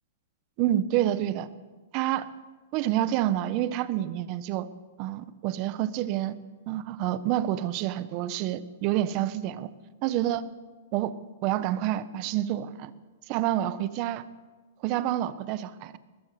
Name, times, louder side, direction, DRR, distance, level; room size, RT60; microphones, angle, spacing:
voice 1, 0.6-1.5 1.9-2.3 2.7-4.7 5.0-6.4 6.7-9.7 10.0-10.4 10.9-11.1 11.4-12.9 13.3-14.3 14.8-16.0, right 13 dB, 40° right, 14 dB, 1.2 m, -28 dB
21.0 x 20.0 x 6.9 m, 1.3 s
hypercardioid pair, 150°, 0 cm